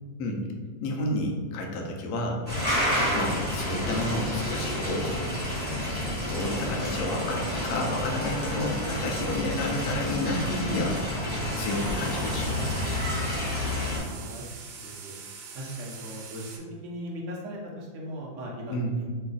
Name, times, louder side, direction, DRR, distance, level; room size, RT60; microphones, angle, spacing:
voice 1, 0.8-2.4 3.1-5.2 6.3-11.0 11.6-12.6 18.7-18.9, left 2 dB, 70° left, 0 dB, 1.1 m, -30 dB
sound 1, 2.5-14.0, left 1 dB, 5° left, 1.0 m, -29 dB
sound 2, 11.5-16.6, right 5 dB, 90° right, 1.2 m, -44 dB
voice 2, 13.9-14.5 14.8-15.1 15.5-16.6 16.8-19.1, equal, 60° right, -2 dB, 0.9 m, -38 dB
3.2 x 2.3 x 3.8 m, 1.5 s
omnidirectional pair, 1.7 m